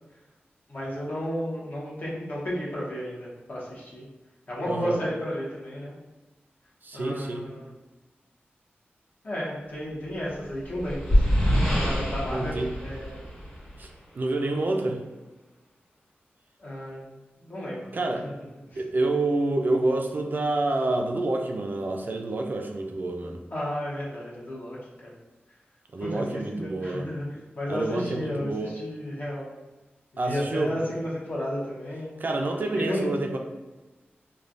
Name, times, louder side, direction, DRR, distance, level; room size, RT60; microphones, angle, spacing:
voice 1, 0.7-4.1 4.5-6.0 6.9-7.7 9.2-11.4 11.8-13.2 16.6-17.1 17.4-18.3 18.7-18.8 23.5-24.8 25.0-25.1 26.0-27.3 27.5-29.5 30.2-32.1 32.7-33.1, equal, 50° left, -6 dB, 1.0 m, -33 dB
voice 2, 4.7-5.0 6.8-7.4 12.3-12.7 13.8-13.9 14.1-15.0 17.9-18.3 18.8-23.4 25.9-27.0 27.7-28.7 30.2-30.8 32.2-33.4, right 2 dB, 50° right, 3 dB, 0.3 m, -28 dB
sound 1, 10.3-13.9, equal, 20° left, 1.5 m, -25 dB
3.2 x 2.2 x 2.5 m, 1.1 s
wide cardioid pair, 90°, 4 cm